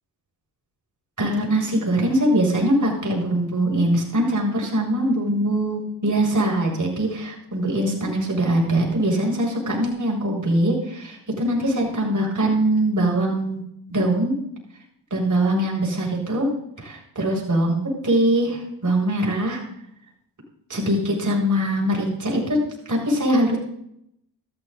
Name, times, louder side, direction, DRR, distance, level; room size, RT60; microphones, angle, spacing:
voice 1, 1.2-13.6 13.9-14.4 15.1-16.5 16.8-17.8 18.0-19.6 20.7-22.6 22.9-23.6, right 1 dB, 40° right, -1 dB, 7.6 m, -22 dB
15.0 x 14.0 x 4.1 m, 0.74 s
supercardioid pair, 55°, 46 cm